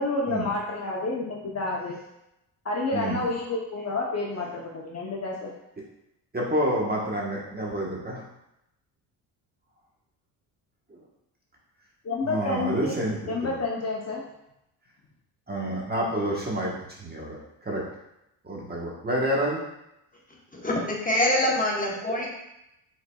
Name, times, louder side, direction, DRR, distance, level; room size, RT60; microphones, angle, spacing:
voice 1, 0.0-2.0 2.6-5.5 12.0-12.9 13.3-14.2, left 3 dB, 35° left, -2 dB, 0.8 m, -29 dB
voice 2, 2.9-3.2 6.3-8.2 12.2-13.5 15.5-17.4 17.6-17.8 18.4-19.6, right 1 dB, 20° right, -3 dB, 1.2 m, -28 dB
voice 3, 20.5-22.3, left 1 dB, 20° left, -2 dB, 1.1 m, -25 dB
5.3 x 4.0 x 2.3 m, 0.85 s
cardioid pair, 85°, 46 cm